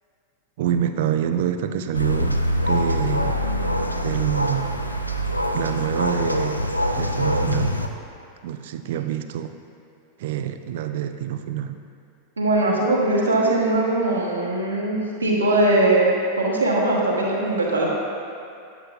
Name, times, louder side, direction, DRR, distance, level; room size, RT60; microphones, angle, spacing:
voice 1, 0.6-2.4 2.7-3.4 4.0-4.7 5.5-7.8 8.4-9.5 10.2-11.8, right 10 dB, 55° right, 9 dB, 0.3 m, -26 dB
sound 1, 1.9-7.9, equal, 90° left, 0.4 m, -24 dB
voice 2, 12.4-16.1 16.4-17.9, right 2 dB, 75° right, -3 dB, 1.2 m, -20 dB
8.6 x 8.0 x 2.3 m, 2.5 s
figure-of-eight pair, 90°, 0 cm